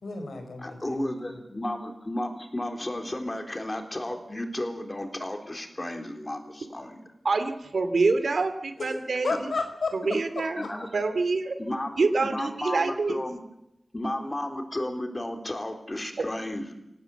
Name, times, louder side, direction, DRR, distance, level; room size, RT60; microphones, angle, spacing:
voice 1, 0.0-1.4 9.2-9.9 10.4-10.7, left 3 dB, 90° left, 6 dB, 5.1 m, -32 dB
voice 2, 0.6-7.0 10.6-10.9 11.6-13.4 13.9-16.7, left 1 dB, 25° left, 5 dB, 3.8 m, -33 dB
voice 3, 7.2-9.5 9.9-10.6 10.9-11.6 12.0-13.2, right 3 dB, 80° right, 9 dB, 2.5 m, -26 dB
25.0 x 17.5 x 8.0 m, 0.82 s
wide cardioid pair, 85°, 0 cm